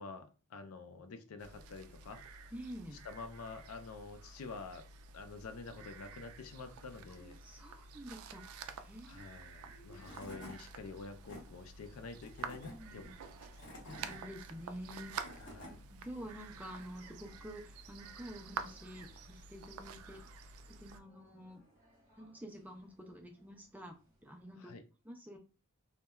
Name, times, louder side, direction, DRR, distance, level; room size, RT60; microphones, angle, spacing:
voice 1, 0.0-2.5 2.9-4.9 5.1-7.4 9.1-13.1 15.4-15.8 24.6-24.8, left 4 dB, 85° left, 0.4 m, -48 dB
sound 1, 1.4-21.0, right 5 dB, 85° right, 0.3 m, -49 dB
voice 2, 2.5-3.0 7.2-9.2 9.6-10.0 12.6-13.1 13.7-21.6 22.2-24.0 24.2-24.8 25.0-25.4, equal, 10° right, 0.3 m, -49 dB
Tools / Wood, 9.7-9.8 10.0-10.6 11.0-11.4 12.2-12.7 13.4-14.2 14.9-15.7, equal, 55° left, 0.9 m, -50 dB
sound 2, 12.8-24.5, equal, 40° right, 0.9 m, -67 dB
2.9 x 2.1 x 2.2 m
head